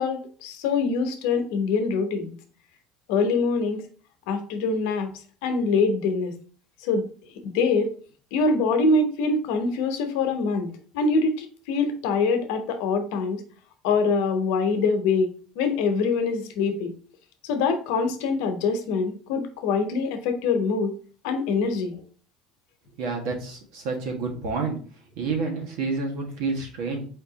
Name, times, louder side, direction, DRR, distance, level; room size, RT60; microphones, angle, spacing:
voice 1, 0.0-2.3 3.1-3.8 4.3-5.1 5.4-6.4 6.8-7.1 7.4-7.9 8.3-13.4 13.8-15.3 15.6-16.9 17.4-20.9 21.2-22.0, left 4 dB, 80° left, 7 dB, 0.8 m, -24 dB
voice 2, 23.0-24.8 25.2-27.0, right 4 dB, 80° right, 1 dB, 1.5 m, -29 dB
4.3 x 2.8 x 3.9 m, 0.41 s
cardioid pair, 130°, 0 cm